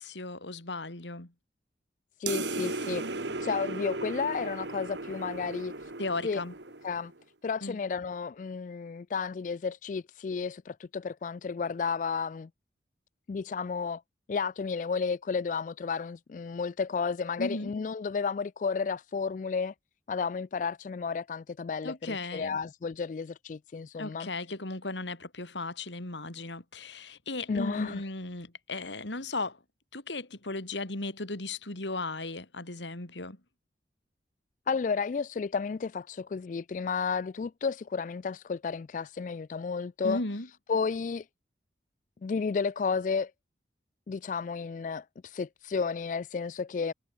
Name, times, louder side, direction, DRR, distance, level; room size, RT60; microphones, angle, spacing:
voice 1, 0.0-1.3 6.0-6.5 7.6-7.8 17.4-17.7 21.8-22.6 24.0-29.6 29.9-33.4 40.0-40.5, left 2 dB, 90° left, 3.1 m, -36 dB
voice 2, 2.2-5.9 6.2-6.4 6.8-7.1 7.4-12.5 13.3-14.0 14.3-19.7 20.1-24.3 27.5-28.0 34.7-40.2 40.7-41.3 42.2-43.3 44.1-46.9, left 5 dB, 45° left, 0.3 m, -32 dB
sound 1, 2.3-7.1, right 3 dB, 80° right, 2.2 m, -36 dB
head